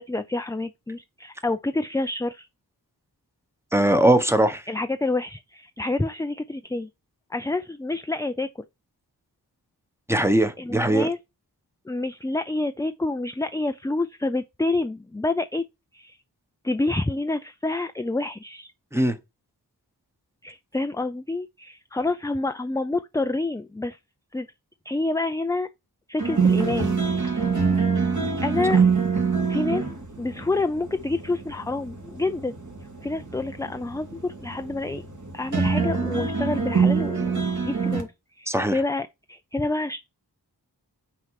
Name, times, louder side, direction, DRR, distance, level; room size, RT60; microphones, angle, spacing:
voice 1, 0.0-2.5 4.7-6.9 7.3-8.5 10.6-11.2 11.9-15.6 15.9-16.2 16.6-18.7 20.4-24.0 24.3-24.5 24.9-25.7 26.1-27.0 28.4-28.8 29.5-29.8 30.2-32.6 33.0-35.0 35.3-38.1 38.4-40.0, left 2 dB, 10° left, 0.4 m, -28 dB
voice 2, 3.7-4.6 10.1-11.1 18.9-19.2 38.5-38.8, right 1 dB, 5° right, 1.0 m, -20 dB
sound 1, 26.2-38.0, right 5 dB, 45° right, 2.1 m, -25 dB
5.8 x 4.4 x 4.7 m
wide cardioid pair, 55°, 40 cm